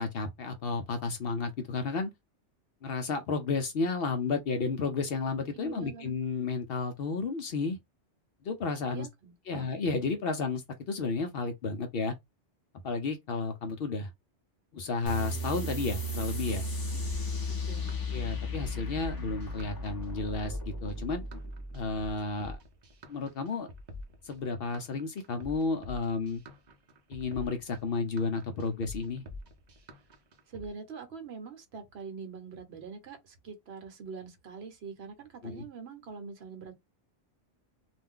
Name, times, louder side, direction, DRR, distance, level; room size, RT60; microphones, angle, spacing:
voice 1, 0.0-2.1 2.8-7.8 8.4-9.1 9.5-12.2 12.8-14.1 14.7-16.6 18.1-21.2 21.7-22.6 23.1-23.7 24.2-26.4 27.1-29.2 35.4-35.6, left 4 dB, 60° left, 0.7 m, -32 dB
voice 2, 5.5-6.1 8.9-9.6 16.9-17.0 17.5-17.9 30.5-36.7, right 5 dB, 60° right, 0.9 m, -44 dB
sound 1, 15.1-22.2, left 1 dB, 20° left, 0.6 m, -35 dB
sound 2, 17.0-30.7, left 2 dB, 45° right, 0.6 m, -46 dB
2.5 x 2.2 x 3.5 m
omnidirectional pair, 1.2 m